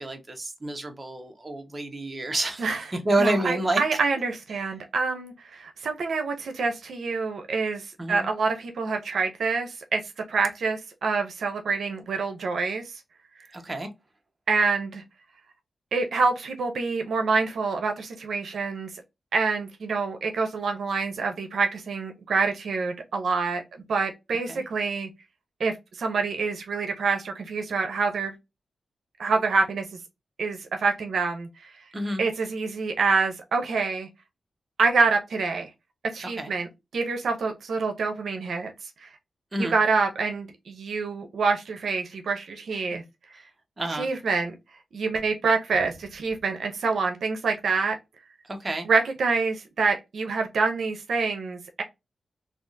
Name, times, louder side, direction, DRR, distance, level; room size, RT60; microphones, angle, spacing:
voice 1, 0.0-4.0 8.0-8.3 13.5-13.9 24.5-24.6 31.9-32.2 36.4-36.5 39.5-39.7 43.3-43.5 43.8-44.1 48.4-48.9, right 2 dB, 30° right, 1.0 m, -29 dB
voice 2, 3.2-10.0 10.3-12.9 14.5-15.0 15.9-18.9 19.3-23.6 23.9-25.1 25.6-28.3 29.2-29.9 30.4-31.7 32.2-34.1 34.8-35.7 36.1-36.7 36.9-38.7 39.0-39.1 39.6-43.0 44.0-44.5 44.9-48.0 48.9-51.8, right 4 dB, 85° right, 0.6 m, -26 dB
3.4 x 2.4 x 2.5 m
cardioid pair, 80°, 0 cm